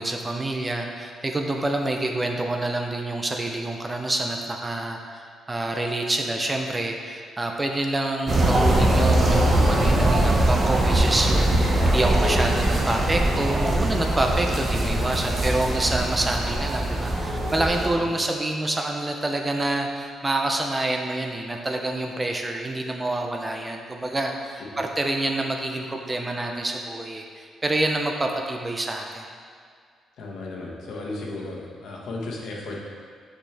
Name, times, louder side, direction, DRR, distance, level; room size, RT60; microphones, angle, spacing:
voice 1, 0.0-29.2, right 2 dB, 15° right, 2 dB, 0.4 m, -27 dB
sound 1, 8.3-17.9, right 1 dB, 35° right, 0.9 m, -21 dB
voice 2, 30.2-32.8, left 2 dB, 70° left, -2 dB, 1.2 m, -34 dB
8.6 x 4.5 x 3.3 m, 2.1 s
cardioid pair, 160°, 0 cm